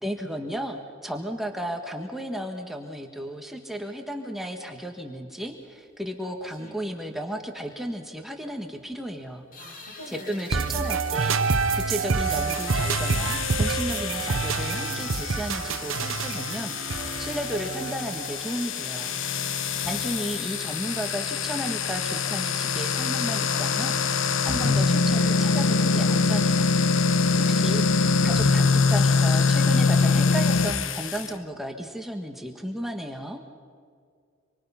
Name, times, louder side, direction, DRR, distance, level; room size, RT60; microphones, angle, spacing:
voice 1, 0.0-9.4 10.1-19.1 19.8-26.7 27.4-33.4, equal, ahead, 3 dB, 1.4 m, -34 dB
sound 1, 5.5-5.6 5.9-6.0 6.4-7.1 7.5-7.6 7.7-7.8 8.2-8.3 8.8-9.0 9.4-21.2, left 4 dB, 40° left, 2.4 m, -43 dB
voice 2, 9.6-10.6, equal, 90° left, 1 dB, 6.6 m, -45 dB
sound 2, 10.5-18.3, right 4 dB, 75° right, 0.9 m, -27 dB
sound 3, 12.2-31.3, left 4 dB, 70° left, 0.9 m, -24 dB
26.5 x 24.0 x 5.7 m, 2.2 s
head